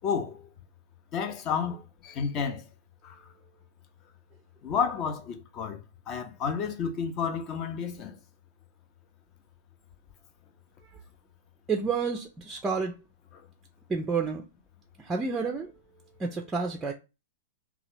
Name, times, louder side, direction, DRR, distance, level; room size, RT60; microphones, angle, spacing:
voice 1, 0.0-0.5 1.1-2.6 3.0-3.2 4.6-5.8 6.1-8.2, left 6 dB, 35° left, 0.5 m, -31 dB
voice 2, 11.7-13.0 13.9-14.4 15.0-15.7 16.2-16.9, right 5 dB, 15° right, 0.4 m, -29 dB
2.8 x 2.3 x 3.2 m
figure-of-eight pair, 100°, 0 cm